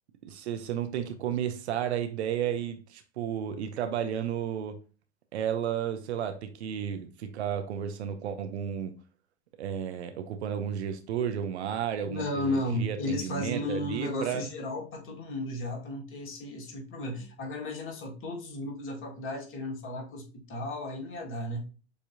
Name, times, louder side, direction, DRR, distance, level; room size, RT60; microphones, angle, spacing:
voice 1, 0.2-4.8 5.3-9.0 9.6-14.4, right 9 dB, 75° right, 0.6 m, -32 dB
voice 2, 12.0-21.7, left 1 dB, 40° left, 1.7 m, -34 dB
6.8 x 2.8 x 2.6 m
hypercardioid pair, 85°, 34 cm